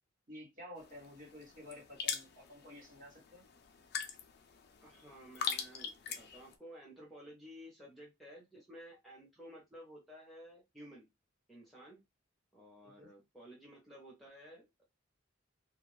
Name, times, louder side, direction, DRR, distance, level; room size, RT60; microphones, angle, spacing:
voice 1, 0.3-3.4 12.8-13.1, left 1 dB, 40° right, 0 dB, 1.2 m, -52 dB
sound 1, 0.8-6.5, left 7 dB, 55° left, 0.4 m, -43 dB
voice 2, 4.8-11.1 11.5-12.0 12.5-14.7, equal, ahead, -3 dB, 0.8 m, -54 dB
2.3 x 2.2 x 3.1 m, 0.21 s
head